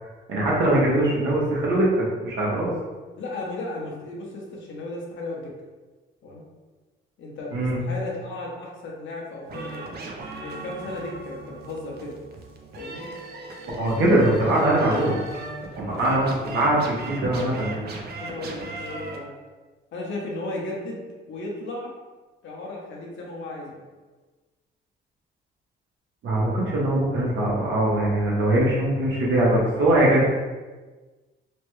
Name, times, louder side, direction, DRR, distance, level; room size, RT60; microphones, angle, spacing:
voice 1, 0.3-2.7 7.5-7.8 13.8-15.2 15.7-17.8 26.2-30.3, right 1 dB, 75° right, -5 dB, 1.0 m, -22 dB
voice 2, 3.2-5.5 6.2-6.4 7.2-9.8 10.4-12.2 12.7-13.1 18.2-19.3 19.9-21.0 21.3-21.9 22.4-23.8, left 2 dB, 70° left, -2 dB, 0.8 m, -35 dB
sound 1, 9.5-19.2, right 2 dB, 55° right, 0.5 m, -38 dB
3.2 x 2.2 x 3.0 m, 1.3 s
cardioid pair, 90°, 20 cm